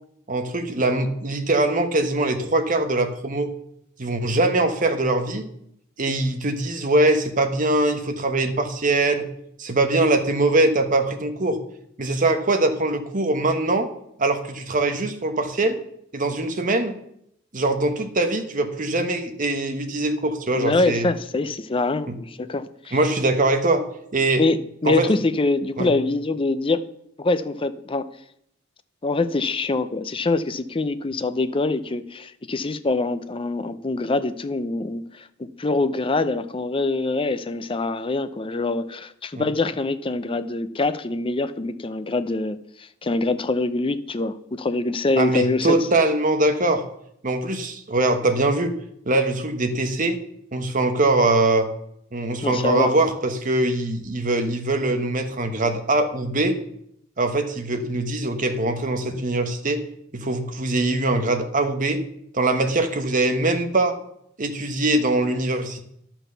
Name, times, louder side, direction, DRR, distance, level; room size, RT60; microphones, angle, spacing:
voice 1, 0.3-3.5 4.0-5.4 6.0-9.3 9.6-11.6 12.0-13.9 14.2-15.8 16.1-16.9 17.5-21.1 22.1-22.2 22.9-23.8 24.1-24.5 24.8-25.1 25.8-25.9 39.3-39.4 45.2-46.8 47.2-48.7 49.0-50.2 50.5-51.7 52.1-56.6 57.2-59.8 60.1-62.0 62.3-63.9 64.4-65.8, right 2 dB, 40° right, 6 dB, 1.1 m, -22 dB
voice 2, 20.6-23.0 24.4-26.8 27.2-28.0 29.0-45.8 52.4-52.9, left 3 dB, 25° left, 12 dB, 0.5 m, -24 dB
11.0 x 6.0 x 6.7 m, 0.74 s
head